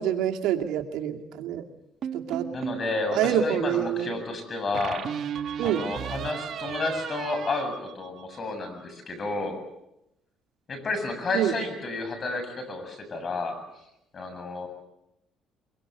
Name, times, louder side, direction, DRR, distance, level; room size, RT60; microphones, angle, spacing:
voice 1, 0.0-1.6 2.1-2.4 3.1-4.2 5.6-5.9 11.3-11.5, right 10 dB, 85° right, 2 dB, 2.4 m, -26 dB
sound 1, 2.0-2.9 4.7-8.5, right 8 dB, 60° right, 1.4 m, -35 dB
voice 2, 2.5-5.0 5.6-9.6 10.7-13.6 14.1-14.7, left 2 dB, 40° left, 7 dB, 7.5 m, -31 dB
24.0 x 23.5 x 7.9 m, 0.86 s
cardioid pair, 105°, 0 cm